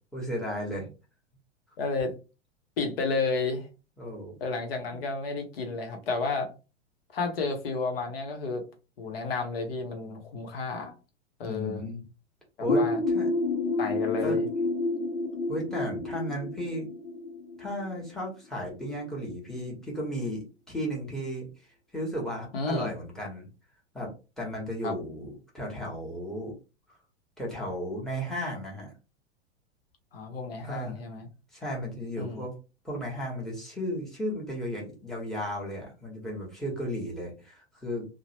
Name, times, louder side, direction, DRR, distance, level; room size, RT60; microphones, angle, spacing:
voice 1, 0.1-0.9 4.0-4.4 4.9-5.0 11.4-12.0 12.6-12.8 13.1-13.3 14.2-14.4 15.5-16.9 17.6-21.5 21.9-23.5 23.9-24.1 24.4-26.5 27.4-28.9 30.6-31.0 31.5-32.5 32.8-38.1, equal, ahead, -2 dB, 1.0 m, -34 dB
voice 2, 1.8-2.1 2.8-3.7 4.4-6.5 7.1-8.7 9.0-10.9 11.4-11.8 12.6-13.0 13.8-14.5 22.5-22.9 24.8-24.9 30.1-31.3 32.2-32.4, left 4 dB, 55° left, 4 dB, 0.9 m, -31 dB
sound 1, 12.7-18.2, left 2 dB, 90° left, 0.5 m, -29 dB
2.9 x 2.1 x 2.8 m, 0.31 s
figure-of-eight pair, 95°, 35 cm